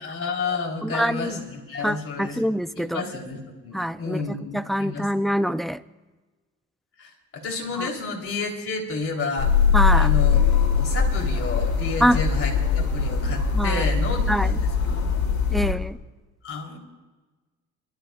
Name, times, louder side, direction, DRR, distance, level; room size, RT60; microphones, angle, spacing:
voice 1, 0.0-2.4 2.7-5.1 7.0-9.5 9.9-14.7 15.0-15.3 16.4-16.8, left 4 dB, 45° left, 0 dB, 3.3 m, -31 dB
voice 2, 0.8-1.3 1.8-3.0 3.7-5.8 7.8-7.9 9.7-10.2 12.0-12.2 13.5-13.8 14.3-14.6 15.5-16.0, equal, ahead, 14 dB, 0.4 m, -25 dB
sound 1, 9.4-15.7, left 6 dB, 75° left, 3.6 m, -21 dB
27.0 x 13.0 x 2.3 m, 1.2 s
cardioid pair, 90°, 30 cm